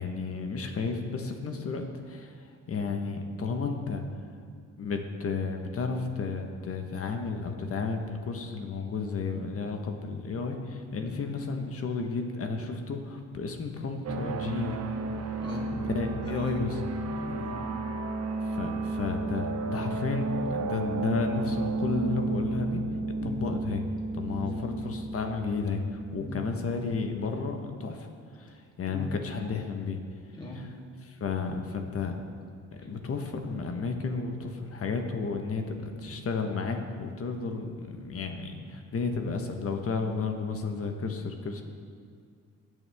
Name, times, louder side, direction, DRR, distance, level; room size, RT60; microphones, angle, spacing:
voice 1, 0.0-2.3 2.7-4.0 4.8-14.7 15.7-16.8 18.4-22.8 23.2-23.8 24.1-28.1 28.4-30.0 31.1-32.2 32.7-41.6, left 4 dB, 50° left, 4 dB, 1.4 m, -32 dB
sound 1, 14.0-27.1, right 3 dB, 55° right, 0.9 m, -33 dB
voice 2, 16.2-16.6 17.3-17.6 23.2-23.4 24.3-24.6 26.2-26.4 28.9-29.1 30.3-30.7 32.8-32.9, left 2 dB, 15° left, -4 dB, 3.0 m, -40 dB
21.0 x 7.1 x 3.6 m, 2.1 s
cardioid pair, 90°, 30 cm